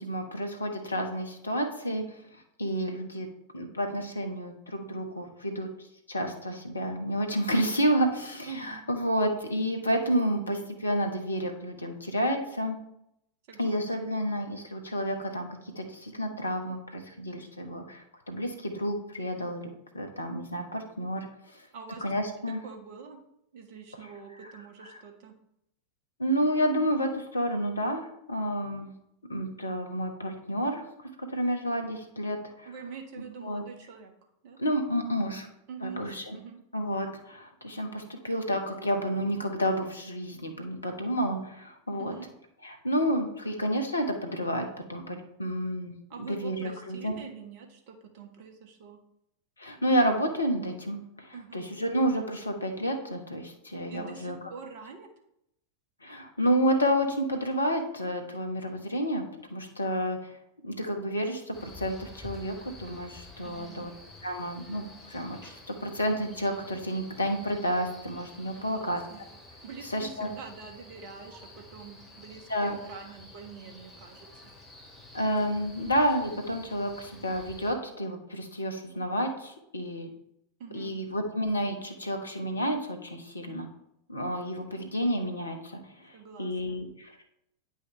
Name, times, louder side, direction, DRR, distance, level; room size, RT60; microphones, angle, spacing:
voice 1, 0.0-2.2 2.6-3.3 3.5-5.7 6.1-12.7 13.6-15.5 15.8-21.2 21.5-21.7 22.0-22.6 24.4-24.5 26.2-28.9 29.3-30.8 31.2-32.7 33.4-33.6 34.6-35.5 35.8-36.4 36.7-42.1 42.6-46.0 46.3-47.2 49.6-54.4 56.0-59.2 59.5-60.3 60.6-63.9 64.2-69.0 69.9-70.3 72.5-72.8 75.1-80.1 80.7-83.7 84.1-86.1 86.4-86.9, equal, 80° left, 4 dB, 1.1 m, -30 dB
voice 2, 8.5-8.9 13.5-14.1 21.7-22.0 22.5-23.2 23.5-25.3 32.6-34.1 34.4-34.6 35.7-36.6 42.0-42.3 46.1-49.0 51.3-51.7 53.9-55.1 63.4-63.9 68.5-69.3 69.6-74.5 80.6-81.0 86.1-86.8, right 5 dB, 45° right, 3 dB, 1.4 m, -45 dB
Male speech man speaking, 61.5-77.7, left 2 dB, 5° left, 2.3 m, -50 dB
9.6 x 5.5 x 3.3 m, 0.78 s
figure-of-eight pair, 90°, 0 cm